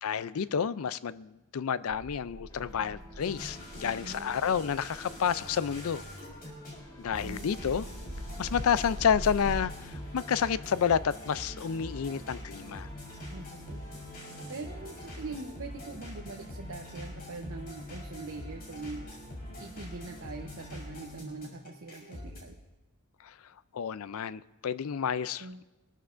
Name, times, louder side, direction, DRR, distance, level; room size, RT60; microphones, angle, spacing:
voice 1, 0.0-6.0 7.0-7.9 8.4-12.9 23.2-23.3 23.7-25.6, left 7 dB, 80° left, 16 dB, 0.4 m, -30 dB
sound 1, 1.9-9.6, equal, 85° right, 2.4 m, -44 dB
sound 2, 2.5-15.4, right 1 dB, 15° left, 1.3 m, -54 dB
sound 3, 3.2-22.4, left 1 dB, 45° left, 4.3 m, -44 dB
voice 2, 3.8-4.3 7.2-7.6 13.3-13.8 14.5-19.0 19.6-22.6 25.4-25.6, right 3 dB, 70° right, 2 dB, 0.8 m, -43 dB
23.5 x 13.0 x 2.6 m, 1.1 s
head